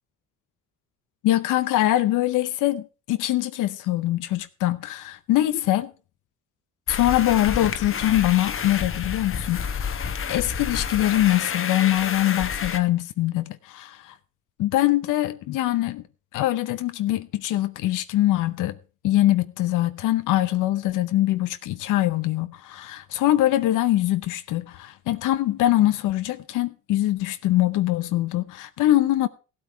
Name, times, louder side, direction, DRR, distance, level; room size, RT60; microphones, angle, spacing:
voice 1, 1.2-5.9 6.9-14.2 14.6-16.0 16.3-18.8 19.0-29.3, left 14 dB, 85° left, 0.7 m, -23 dB
sound 1, 6.9-12.8, left 7 dB, 45° left, 1.1 m, -29 dB
15.5 x 8.6 x 4.4 m
cardioid pair, 90°, 30 cm